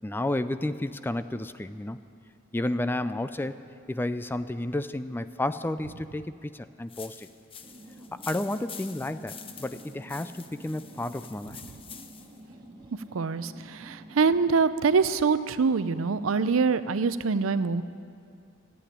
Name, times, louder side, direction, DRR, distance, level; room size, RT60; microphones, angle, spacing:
voice 1, 0.0-2.0 2.5-3.6 3.9-7.3 8.1-11.6, left 1 dB, 10° left, 12 dB, 0.3 m, -31 dB
sound 1, 6.9-12.4, left 7 dB, 25° left, 0.7 m, -46 dB
sound 2, 7.6-14.7, right 1 dB, 20° right, 1.6 m, -49 dB
voice 2, 13.1-17.8, right 5 dB, 80° right, 14 dB, 0.5 m, -24 dB
14.5 x 8.6 x 10.0 m, 2.4 s
head